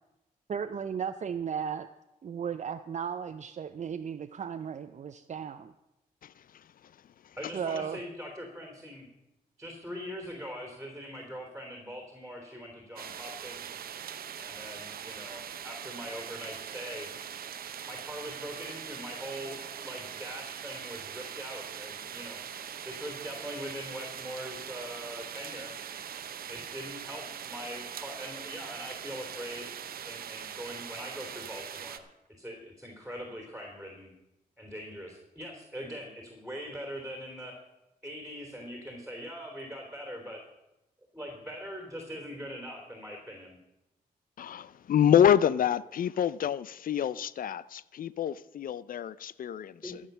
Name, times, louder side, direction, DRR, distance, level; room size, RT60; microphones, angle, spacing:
voice 1, 0.5-1.9 2.2-5.7 7.5-8.0, right 7 dB, 50° right, 0.6 m, -35 dB
voice 2, 7.4-9.1 9.6-13.8 14.4-17.1 17.9-22.4 22.8-25.7 26.5-29.7 30.0-32.0 32.4-34.1 34.6-37.5 38.0-40.4 41.1-43.6 49.8-49.9, equal, 5° right, 3.3 m, -42 dB
sound 1, 13.0-32.0, right 8 dB, 75° right, 0.9 m, -42 dB
voice 3, 44.4-46.6 46.9-50.0, left 9 dB, 65° left, 0.5 m, -27 dB
14.5 x 6.4 x 6.8 m
cardioid pair, 65°, 16 cm